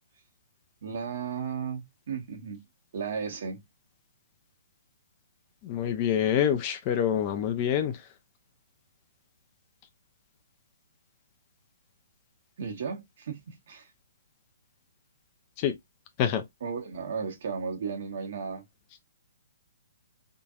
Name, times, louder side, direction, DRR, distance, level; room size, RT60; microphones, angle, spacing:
voice 1, 0.8-2.6 2.9-3.6 12.6-13.9 16.6-18.6, right 6 dB, 55° right, 1.3 m, -35 dB
voice 2, 5.6-8.0 15.6-15.8 16.2-16.4, left 9 dB, 35° left, 0.6 m, -26 dB
3.7 x 2.6 x 2.4 m
figure-of-eight pair, 125°, 0 cm